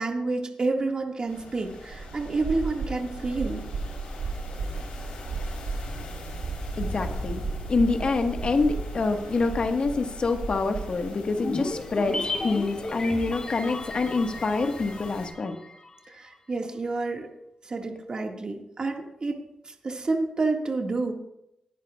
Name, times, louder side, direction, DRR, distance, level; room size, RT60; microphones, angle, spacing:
voice 1, 0.0-3.6 16.1-17.3 17.6-21.1, right 3 dB, 45° right, 2 dB, 1.9 m, -29 dB
sound 1, 1.3-15.3, left 2 dB, 80° left, 3.8 m, -41 dB
sound 2, 1.9-11.1, right 4 dB, 75° right, 1.2 m, -35 dB
voice 2, 6.8-7.4 7.7-15.6, left 3 dB, 55° left, 5 dB, 1.5 m, -26 dB
sound 3, 11.4-15.9 16.1-16.2, left 3 dB, 35° left, 1.4 m, -34 dB
19.0 x 10.5 x 2.4 m, 0.82 s
cardioid pair, 60°, 2 cm